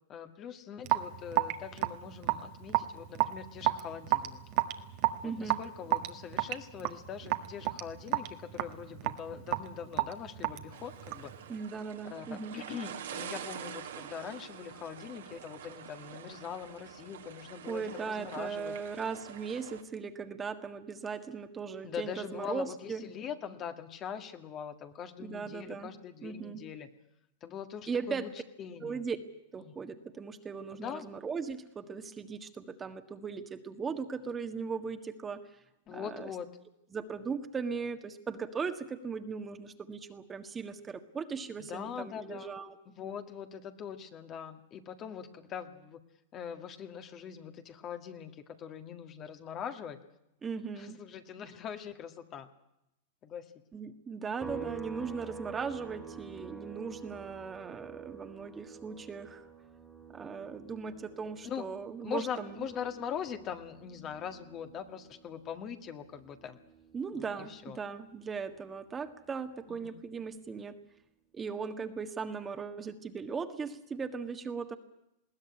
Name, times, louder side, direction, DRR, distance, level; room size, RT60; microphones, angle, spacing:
voice 1, 0.1-4.4 5.2-11.3 12.1-18.8 21.8-26.9 27.4-28.3 28.6-29.0 29.6-29.8 30.8-31.1 35.9-36.5 41.7-42.6 42.9-46.0 46.3-50.0 50.8-52.5 53.2-53.5 61.4-61.7 62.0-66.6 67.1-67.8 69.7-70.0, left 8 dB, 35° left, 7 dB, 1.9 m, -42 dB
Raindrop / Drip, 0.8-11.4, right 17 dB, 55° right, 1.6 m, -32 dB
voice 2, 5.2-5.6 11.5-12.6 17.7-23.0 25.2-25.9 26.2-26.6 27.9-28.3 28.8-29.2 29.5-35.5 35.9-36.3 36.9-42.8 50.4-51.0 53.7-59.5 60.1-62.6 66.9-70.8 71.3-74.8, right 5 dB, 20° right, 7 dB, 1.6 m, -38 dB
sound 1, 10.7-19.8, right 9 dB, 80° right, 2.8 m, -46 dB
sound 2, 54.4-68.0 68.3-70.5, right 5 dB, 5° right, 2.5 m, -49 dB
20.5 x 16.5 x 9.7 m, 0.85 s
hypercardioid pair, 110°, 0 cm